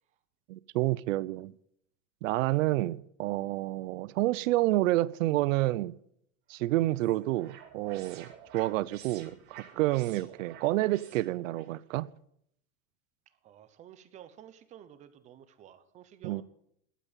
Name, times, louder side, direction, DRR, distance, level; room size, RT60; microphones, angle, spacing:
voice 1, 0.5-1.5 2.2-5.9 6.5-8.3 8.5-12.1 16.2-16.4, right 17 dB, 85° right, 0.7 m, -29 dB
sound 1, 6.5-11.7, right 9 dB, 40° right, 2.6 m, -51 dB
voice 2, 13.3-16.4, right 10 dB, 20° right, 0.7 m, -52 dB
12.5 x 9.2 x 9.2 m
supercardioid pair, 175°, 38 cm